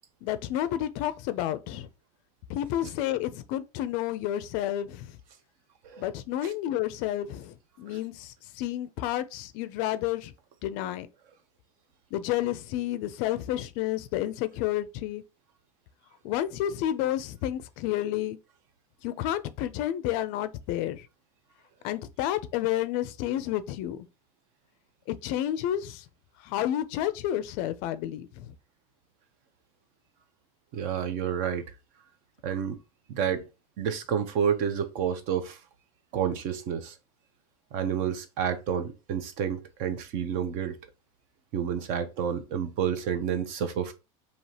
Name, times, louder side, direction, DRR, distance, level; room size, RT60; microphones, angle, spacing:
voice 1, 0.2-1.9 2.5-5.1 6.0-10.3 10.6-11.1 12.1-15.2 16.2-18.4 19.0-21.0 21.8-24.0 25.2-26.0 26.5-28.4, left 12 dB, 50° left, 0.4 m, -30 dB
voice 2, 30.7-31.7 32.4-32.8 33.1-33.4 33.8-35.6 36.1-37.0 37.7-40.8 41.5-43.9, right 8 dB, 50° right, 0.7 m, -29 dB
4.7 x 2.9 x 2.8 m
supercardioid pair, 155°, 18 cm